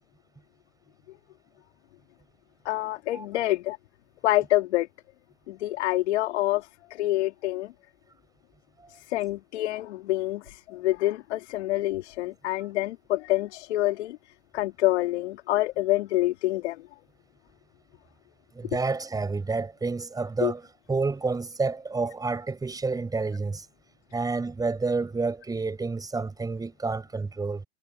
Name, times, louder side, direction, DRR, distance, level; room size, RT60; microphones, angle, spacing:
voice 1, 2.6-3.8 4.2-4.9 5.5-7.7 8.9-14.2 14.5-16.8 20.4-20.5, left 16 dB, 65° left, 2.6 m, -27 dB
voice 2, 18.5-20.6 20.9-23.7 24.1-27.6, right 3 dB, 10° right, 6.9 m, -29 dB
hypercardioid pair, 130°, 36 cm